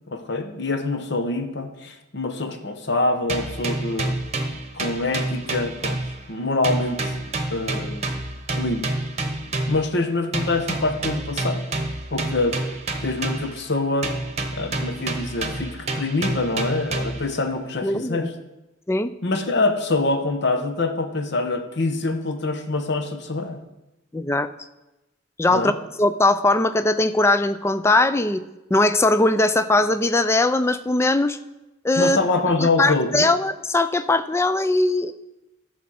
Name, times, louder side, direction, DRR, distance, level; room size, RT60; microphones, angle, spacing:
voice 1, 0.1-4.1 4.7-6.0 6.3-7.1 7.5-8.1 8.6-8.9 9.7-11.6 12.1-12.6 13.0-14.1 14.5-18.3 19.2-23.6 25.5-25.7 32.0-33.3, left 2 dB, 55° left, 7 dB, 1.0 m, -25 dB
sound 1, 3.3-6.4 6.6-9.9 10.3-13.7 14.0-17.3, right 2 dB, 30° right, 1.0 m, -28 dB
voice 2, 17.8-18.3 18.9-19.1 24.1-24.5 25.4-25.7 26.0-28.4 28.7-31.4 31.8-32.2 32.6-35.1, left 2 dB, 15° left, 12 dB, 0.3 m, -20 dB
13.5 x 6.2 x 4.2 m, 0.99 s
head